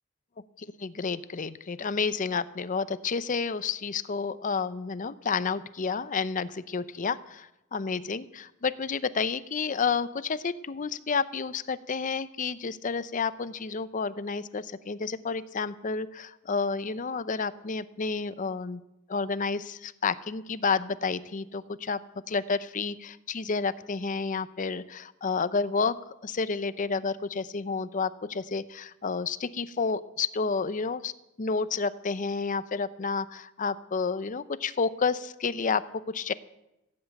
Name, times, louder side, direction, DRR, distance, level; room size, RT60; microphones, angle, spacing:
voice 1, 0.6-18.8 19.1-22.0 22.3-26.0 26.2-31.1 31.4-36.3, left 5 dB, 40° left, 14 dB, 0.6 m, -30 dB
16.0 x 8.1 x 8.8 m, 0.90 s
head